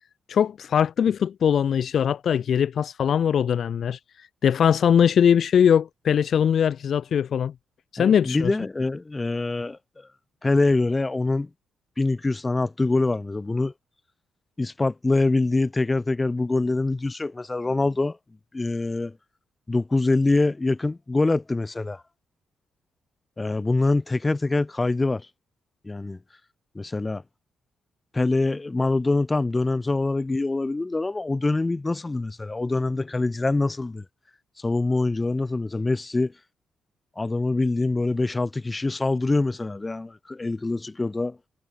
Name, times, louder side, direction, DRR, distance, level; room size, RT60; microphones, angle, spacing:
voice 1, 0.3-4.0 4.4-7.5 7.9-8.5, left 8 dB, 65° left, 0.9 m, -21 dB
voice 2, 8.0-10.1 10.4-11.5 12.0-13.7 14.6-18.2 18.5-19.1 19.7-22.0 23.4-25.3 25.8-26.2 26.7-27.2 28.1-34.0 34.6-36.3 37.2-41.4, left 2 dB, 20° left, 1.0 m, -24 dB
cardioid pair, 75°, 0 cm